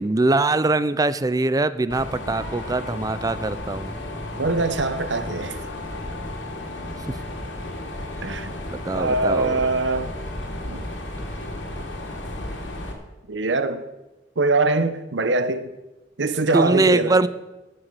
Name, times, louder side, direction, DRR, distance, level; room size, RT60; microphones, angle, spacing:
voice 1, 0.0-3.9 7.1-7.2 8.9-9.6 16.5-17.3, right 2 dB, 20° right, 0.5 m, -22 dB
Mechanisms, 1.9-12.9, left 1 dB, 80° left, 2.5 m, -33 dB
voice 2, 4.3-5.6 8.2-8.5 8.9-10.1 10.7-10.8 13.3-13.8 14.4-15.7 16.2-17.2, right 3 dB, 70° right, 1.0 m, -23 dB
12.5 x 7.9 x 7.7 m
head